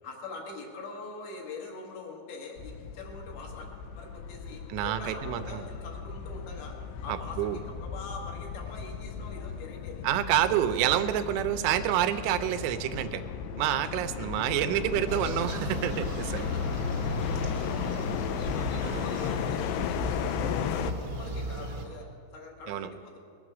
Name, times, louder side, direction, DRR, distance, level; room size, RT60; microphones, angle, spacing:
voice 1, 0.0-3.7 4.0-10.1 11.5-11.6 13.8-13.9 14.2-14.3 14.7-15.5 16.3-17.0 17.5-18.1 18.5-23.2, left 4 dB, 75° left, -1 dB, 3.9 m, -44 dB
sound 1, 2.6-20.9, left 8 dB, 90° left, 2.4 m, -36 dB
voice 2, 4.7-5.7 7.1-7.6 10.0-13.2 13.6-16.4 18.8-19.1 22.7-22.9, right 11 dB, 85° right, 10 dB, 3.1 m, -28 dB
sound 2, 15.1-21.8, left 1 dB, 50° right, 1.3 m, -34 dB
20.5 x 8.9 x 6.1 m, 2.2 s
omnidirectional pair, 5.4 m